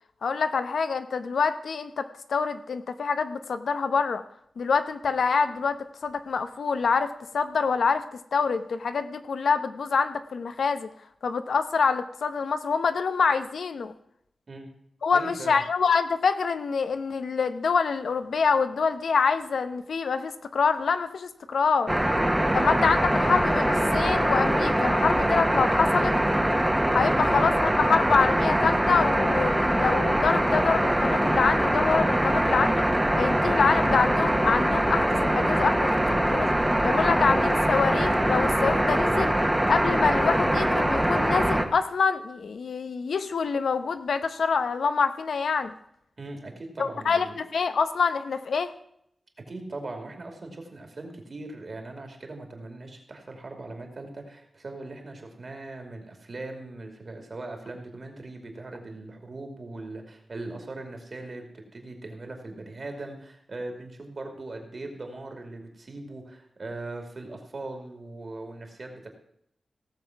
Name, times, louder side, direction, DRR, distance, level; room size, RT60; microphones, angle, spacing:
voice 1, 0.2-4.2 4.6-8.0 8.3-10.9 11.2-13.9 15.0-21.9 22.5-26.1 26.9-32.8 33.1-36.5 36.8-39.4 39.7-45.7 46.8-48.7, left 5 dB, 80° left, 10 dB, 0.8 m, -26 dB
voice 2, 15.1-15.6 22.5-22.7 27.0-27.2 46.2-47.3 49.5-69.1, right 2 dB, 45° right, 3 dB, 2.6 m, -40 dB
sound 1, 21.9-41.6, right 1 dB, 10° right, 1.1 m, -23 dB
16.5 x 7.2 x 5.9 m, 0.72 s
wide cardioid pair, 135°, 0 cm